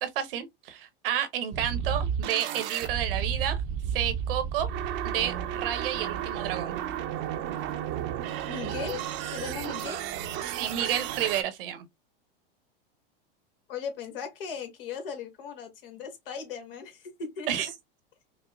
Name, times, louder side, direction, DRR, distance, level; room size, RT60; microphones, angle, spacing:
voice 1, 0.0-3.6 3.9-4.7 5.0-6.8 10.5-11.8 17.5-17.7, right 10 dB, 70° right, 1.0 m, -30 dB
sound 1, 1.5-11.4, right 9 dB, 40° right, 0.7 m, -32 dB
voice 2, 8.5-9.0 9.3-10.0 13.7-17.7, left 6 dB, 70° left, 1.5 m, -38 dB
5.1 x 2.1 x 2.2 m
hypercardioid pair, 115°, 29 cm